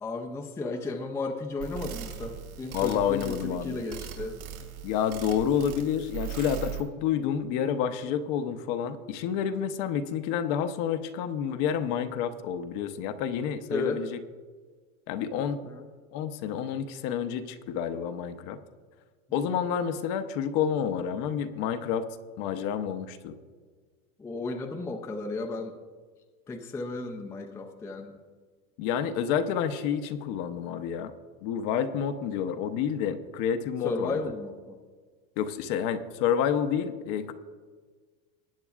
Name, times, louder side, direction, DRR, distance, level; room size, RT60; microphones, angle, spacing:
voice 1, 0.0-4.4 13.7-14.0 15.6-15.8 24.2-25.7 26.5-28.2 33.8-34.8, left 3 dB, 5° left, 3 dB, 0.5 m, -34 dB
sound 1, 1.6-6.8, right 9 dB, 80° right, 2.8 m, -39 dB
voice 2, 2.7-3.8 4.8-14.2 15.1-15.6 16.1-18.6 19.3-22.1 22.4-23.4 28.8-31.1 31.4-34.3 35.4-37.3, left 8 dB, 45° left, 9 dB, 0.8 m, -29 dB
19.5 x 8.8 x 2.4 m, 1.5 s
supercardioid pair, 140°, 41 cm